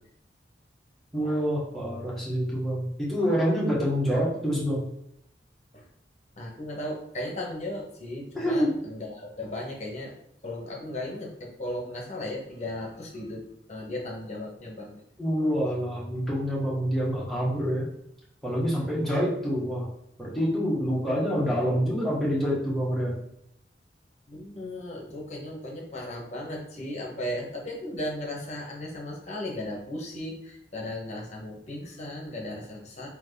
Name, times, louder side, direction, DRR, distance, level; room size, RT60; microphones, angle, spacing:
voice 1, 1.1-4.8 8.4-8.7 15.2-17.9 18.4-19.9 20.2-23.2, equal, ahead, -7 dB, 1.3 m, -26 dB
voice 2, 6.4-10.1 10.4-14.9 24.3-33.1, left 1 dB, 40° left, -1 dB, 1.0 m, -36 dB
3.6 x 2.9 x 3.9 m, 0.76 s
head